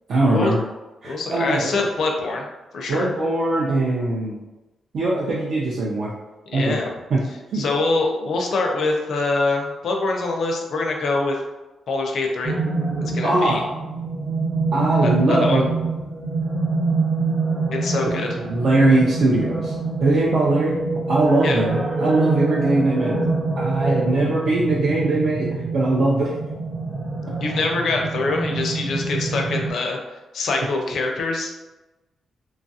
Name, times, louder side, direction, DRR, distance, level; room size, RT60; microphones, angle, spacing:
voice 1, 0.1-0.6 1.0-1.7 2.9-4.4 4.9-6.1 6.5-6.8 7.1-7.2 7.5-7.6 13.2-13.6 14.7-15.7 18.0-19.7 20.0-20.8 21.1-23.1 23.6-25.5 25.7-26.3, right 2 dB, 55° right, -5 dB, 0.4 m, -20 dB
voice 2, 1.0-2.4 2.7-3.1 6.5-6.9 7.5-11.4 11.9-12.5 13.0-13.6 15.0-15.6 17.7-18.3 21.4-21.6 27.4-30.0 30.3-31.5, left 3 dB, 55° left, 1 dB, 0.5 m, -24 dB
sound 1, 12.4-29.7, right 3 dB, 25° right, 0.9 m, -25 dB
3.0 x 2.3 x 2.7 m, 1.1 s
wide cardioid pair, 170°, 0 cm